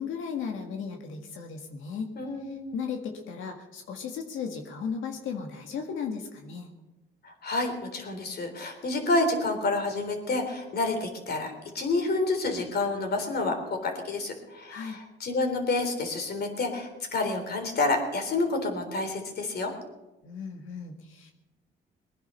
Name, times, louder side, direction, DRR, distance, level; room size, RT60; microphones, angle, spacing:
voice 1, 0.0-2.1 2.7-6.7 14.7-15.0 20.2-21.3, left 6 dB, 85° left, 3 dB, 1.9 m, -35 dB
voice 2, 2.2-2.7 7.2-19.7, left 2 dB, 55° left, 4 dB, 3.7 m, -29 dB
21.0 x 10.5 x 5.7 m, 1.0 s
cardioid pair, 90°, 20 cm